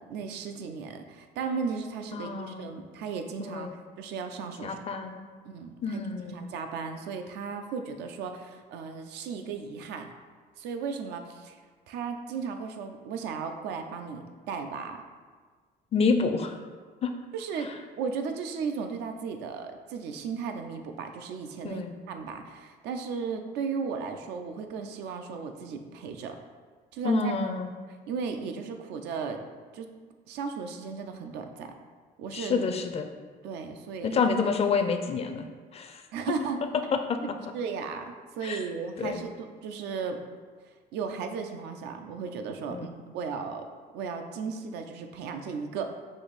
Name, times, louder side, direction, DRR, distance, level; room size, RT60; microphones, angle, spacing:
voice 1, 0.1-3.7 4.0-4.8 5.4-10.1 10.6-11.6 11.9-15.0 17.3-26.4 26.9-27.3 28.1-29.4 29.7-29.9 30.3-31.7 32.2-32.6 33.4-34.2 36.1-36.7 37.5-40.2 40.9-43.7 43.9-45.9, right 5 dB, 85° right, 6 dB, 0.5 m, -35 dB
voice 2, 2.1-2.7 3.4-3.7 4.6-5.2 5.8-6.4 15.9-16.6 17.0-17.1 21.6-21.9 27.0-27.7 32.3-33.1 34.0-35.5 35.7-36.0 37.1-37.2 38.4-38.6 39.0-39.2 42.7-43.0, left 5 dB, 35° left, 6 dB, 0.4 m, -28 dB
5.0 x 2.6 x 4.0 m, 1.5 s
cardioid pair, 110°, 17 cm